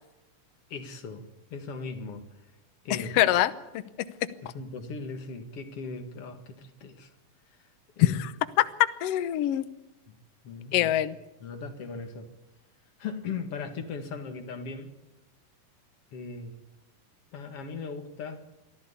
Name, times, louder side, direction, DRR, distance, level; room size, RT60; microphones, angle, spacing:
voice 1, 0.7-2.2 2.8-3.1 4.4-7.1 8.0-8.2 10.1-10.2 10.4-10.9 11.4-12.3 13.0-14.9 16.1-16.6 17.3-18.4, left 4 dB, 50° left, 6 dB, 2.4 m, -38 dB
voice 2, 2.9-3.5 8.0-8.3 8.6-8.7 9.0-9.6 10.7-11.2, left 13 dB, 80° left, 12 dB, 1.4 m, -23 dB
23.5 x 14.0 x 8.4 m, 1.0 s
omnidirectional pair, 4.1 m